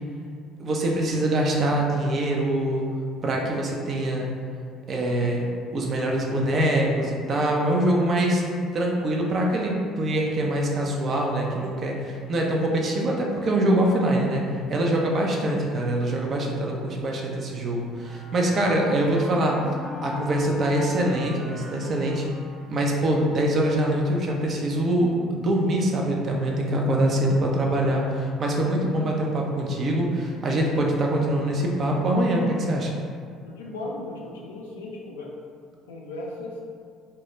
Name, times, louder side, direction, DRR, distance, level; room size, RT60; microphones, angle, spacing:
voice 1, 0.6-2.9 3.2-4.3 4.9-8.4 8.7-14.4 14.7-19.6 20.0-22.2 22.7-32.9, right 1 dB, 45° right, -1 dB, 0.4 m, -24 dB
Wind instrument woodwind instrument, 18.0-23.4, equal, 25° right, 0.8 m, -38 dB
voice 2, 33.4-35.3 35.9-36.6, left 2 dB, 80° left, -2 dB, 0.3 m, -36 dB
2.2 x 2.1 x 3.1 m, 2.1 s
hypercardioid pair, 55°, 0 cm